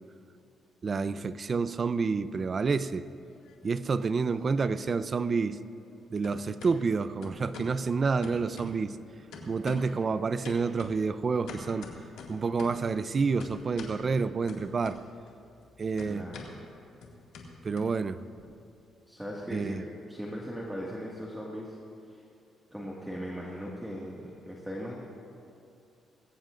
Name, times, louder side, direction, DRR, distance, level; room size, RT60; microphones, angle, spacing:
voice 1, 0.8-3.0 3.6-5.6 6.1-9.0 9.4-11.9 12.3-15.0 15.8-16.3 17.6-18.2 19.5-19.8, right 4 dB, 40° right, 14 dB, 0.5 m, -29 dB
sound 1, 3.1-4.1 4.4-6.0 6.2-6.7 7.2-7.8 8.2-9.0 9.3-10.0 10.4-12.9 13.4-14.0 14.5-15.3 15.6-18.4, left 4 dB, 85° left, 2.1 m, -45 dB
voice 2, 16.0-16.4 19.1-19.8 20.1-21.8 22.1-22.2 22.7-24.9, equal, 5° right, -4 dB, 1.9 m, -38 dB
21.0 x 16.5 x 2.6 m, 2.6 s
cardioid pair, 90°, 0 cm